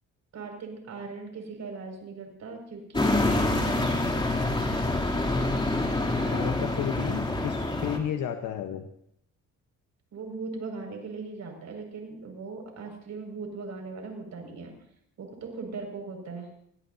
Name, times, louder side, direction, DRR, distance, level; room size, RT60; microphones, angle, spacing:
voice 1, 0.3-4.2 10.1-14.7 15.2-16.5, right 4 dB, 65° right, 2 dB, 6.0 m, -39 dB
sound 1, 2.9-8.0, left 2 dB, 15° left, 3.0 m, -26 dB
voice 2, 6.3-8.8, left 9 dB, 80° left, 5 dB, 1.2 m, -32 dB
25.0 x 18.0 x 2.8 m, 0.74 s
cardioid pair, 90°, 30 cm